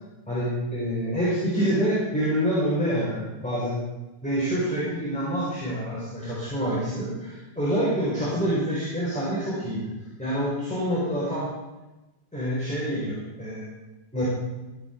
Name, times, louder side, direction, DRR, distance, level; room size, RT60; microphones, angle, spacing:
voice 1, 0.3-3.8 4.2-9.9 10.2-11.5 12.3-13.6 14.1-14.2, equal, ahead, -9 dB, 4.1 m, -27 dB
15.0 x 9.4 x 4.5 m, 1.1 s
omnidirectional pair, 3.4 m